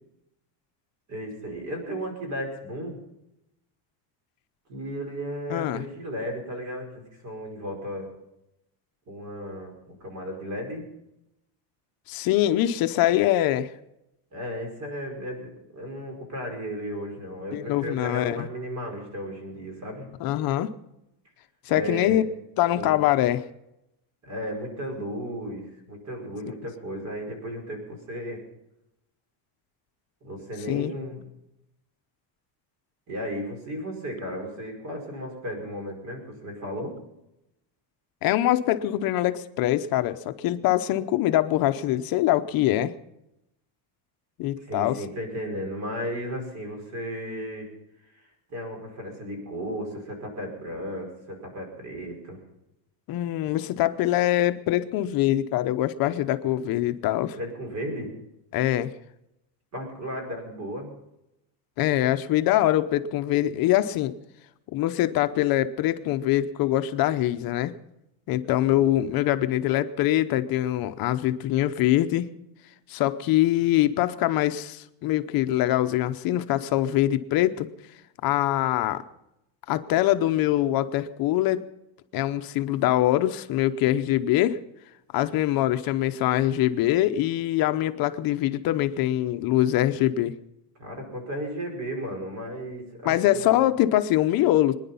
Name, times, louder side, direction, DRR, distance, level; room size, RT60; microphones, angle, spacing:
voice 1, 1.1-3.0 4.7-8.1 9.1-10.9 14.3-20.1 21.7-22.2 22.8-22.9 24.2-28.4 30.2-31.2 33.1-37.0 44.6-47.7 48.1-52.4 57.4-58.1 59.7-60.9 68.6-68.8 90.8-93.5, equal, 35° right, 3 dB, 5.1 m, -35 dB
voice 2, 5.5-5.9 12.1-13.7 17.5-18.5 20.2-20.7 21.7-22.3 22.6-23.4 30.7-30.9 38.2-42.9 44.4-45.0 53.1-57.4 58.5-58.9 61.8-64.1 64.7-67.7 68.3-72.3 72.9-77.7 78.2-79.0 79.7-81.6 82.1-84.6 85.1-90.3 93.0-94.7, left 14 dB, 50° left, 10 dB, 0.8 m, -23 dB
23.5 x 10.5 x 5.5 m, 0.86 s
cardioid pair, 170°, 47 cm